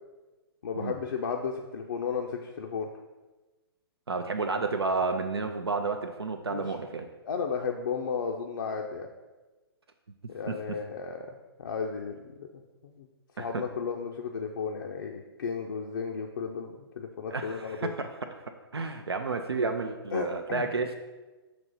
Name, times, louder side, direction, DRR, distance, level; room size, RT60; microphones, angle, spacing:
voice 1, 0.6-2.9 6.5-6.6 7.3-9.1 10.3-11.3 11.6-12.5 12.8-13.1 13.4-17.9 20.1-20.7, left 6 dB, 55° left, 0 dB, 0.5 m, -34 dB
voice 2, 4.1-7.1 10.5-10.8 13.4-13.6 17.3-18.1 18.7-21.0, right 4 dB, 75° right, 5 dB, 0.5 m, -31 dB
5.9 x 3.0 x 5.2 m, 1.2 s
figure-of-eight pair, 120°, 13 cm